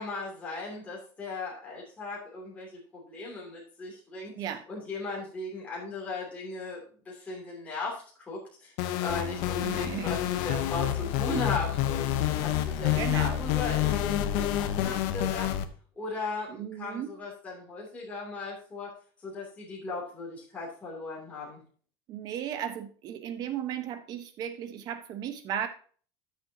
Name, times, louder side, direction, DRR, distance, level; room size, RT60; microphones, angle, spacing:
voice 1, 0.0-2.7 2.9-4.3 4.7-12.0 12.4-15.5 16.0-18.9 19.2-21.6, left 3 dB, 15° left, -5 dB, 2.7 m, -37 dB
sound 1, 8.8-15.6, left 12 dB, 60° left, 0.8 m, -28 dB
voice 2, 9.6-10.2 12.9-13.4 16.5-17.1 22.1-25.7, right 10 dB, 40° right, 9 dB, 1.1 m, -35 dB
12.5 x 6.9 x 2.8 m, 0.43 s
cardioid pair, 180°, 11 cm